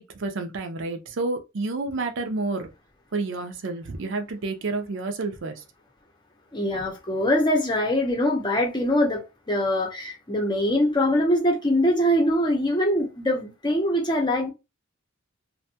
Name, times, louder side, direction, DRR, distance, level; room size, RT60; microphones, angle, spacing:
voice 1, 0.0-2.7 3.1-5.6, right 3 dB, 60° right, 0.5 m, -29 dB
voice 2, 6.5-14.5, left 1 dB, 20° left, 0.7 m, -23 dB
2.5 x 2.2 x 2.8 m
head